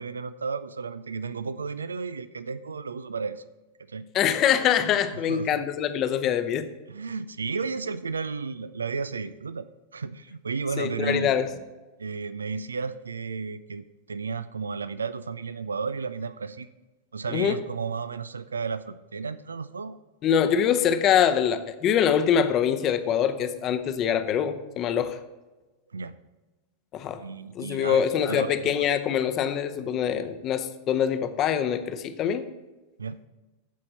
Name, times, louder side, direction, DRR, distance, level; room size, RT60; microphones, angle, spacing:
voice 1, 0.0-3.4 3.9-4.0 5.3-5.5 6.9-9.7 9.9-11.4 12.0-16.7 17.1-20.0 25.9-26.1 27.2-28.7 30.1-30.2 33.0-33.2, right 5 dB, 75° right, 14 dB, 0.4 m, -33 dB
voice 2, 4.1-6.7 10.8-11.5 17.3-17.6 20.2-25.2 26.9-27.2 27.5-32.5, left 8 dB, 35° left, 10 dB, 0.8 m, -24 dB
14.5 x 5.6 x 4.1 m, 1.1 s
figure-of-eight pair, 90°, 0 cm